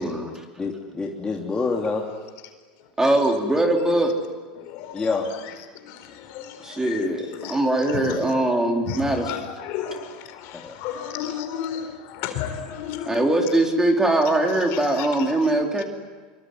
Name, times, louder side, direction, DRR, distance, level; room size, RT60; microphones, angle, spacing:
voice 1, 0.6-2.1 4.9-5.3 10.5-10.7, left 4 dB, 15° left, -1 dB, 3.1 m, -27 dB
voice 2, 3.0-4.1 6.6-9.3 13.1-15.8, right 1 dB, 10° right, 2 dB, 4.2 m, -21 dB
voice 3, 4.5-5.4 5.8-8.2 8.9-13.4 14.7-15.1 15.4-15.5 15.8-15.9, left 8 dB, 60° left, 8 dB, 4.5 m, -34 dB
25.5 x 23.0 x 9.6 m, 1.4 s
hypercardioid pair, 105°, 5 cm